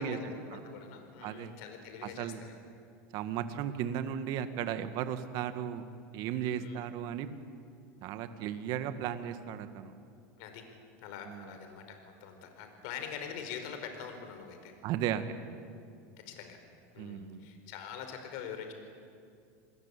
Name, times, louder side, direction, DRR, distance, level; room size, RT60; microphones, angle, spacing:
voice 1, 0.0-2.6 6.4-6.8 10.4-10.7 11.0-14.7 16.2-16.6 16.9-18.7, left 7 dB, 65° left, 6 dB, 4.9 m, -44 dB
voice 2, 3.1-5.8 6.1-7.3 8.0-9.9 11.3-11.4 14.8-15.2 17.0-17.4, right 10 dB, 55° right, 9 dB, 2.0 m, -35 dB
28.5 x 20.5 x 8.6 m, 2.4 s
supercardioid pair, 120°, 8 cm